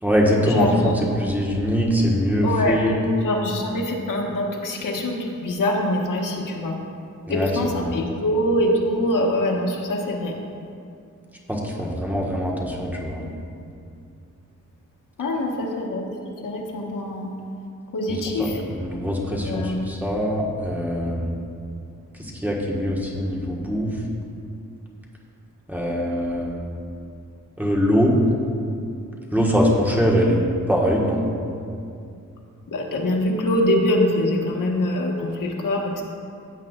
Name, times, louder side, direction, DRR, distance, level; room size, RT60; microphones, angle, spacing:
voice 1, 0.0-0.9 1.2-3.0 7.3-7.5 11.5-13.2 18.1-21.3 22.2-24.0 25.7-26.5 27.6-28.1 29.3-31.3, equal, 5° right, -3 dB, 1.4 m, -22 dB
voice 2, 0.5-1.1 2.4-2.8 3.2-6.8 7.3-10.4 15.2-16.0 16.4-17.3 17.9-18.6 19.2-19.9 32.7-36.0, left 1 dB, 75° left, 0 dB, 1.4 m, -24 dB
15.5 x 8.1 x 2.4 m, 2.5 s
wide cardioid pair, 110°, 32 cm